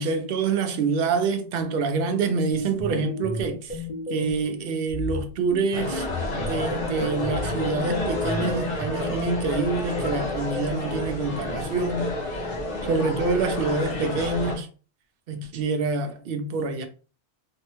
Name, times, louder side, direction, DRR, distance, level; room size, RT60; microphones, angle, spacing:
voice 1, 0.0-3.8 4.1-6.1 6.3-12.1 12.8-14.7 15.3-16.9, right 4 dB, 60° right, 0.7 m, -26 dB
sound 1, 2.5-4.5 4.9-8.9, left 2 dB, 45° left, 0.5 m, -33 dB
sound 2, 5.7-14.6, left 2 dB, 70° left, 1.2 m, -30 dB
3.5 x 2.1 x 2.9 m
omnidirectional pair, 1.2 m